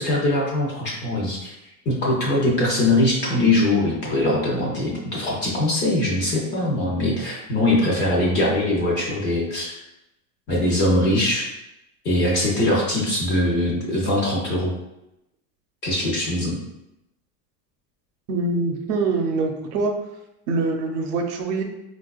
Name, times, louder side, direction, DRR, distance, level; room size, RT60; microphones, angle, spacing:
voice 1, 0.0-1.5 1.9-9.7 10.5-11.5 12.0-14.7 15.8-16.6, left 1 dB, 25° left, -3 dB, 0.5 m, -22 dB
voice 2, 18.3-19.9 20.5-21.6, right 3 dB, 80° right, 3 dB, 0.7 m, -24 dB
4.2 x 2.3 x 2.3 m, 0.88 s
supercardioid pair, 160°, 46 cm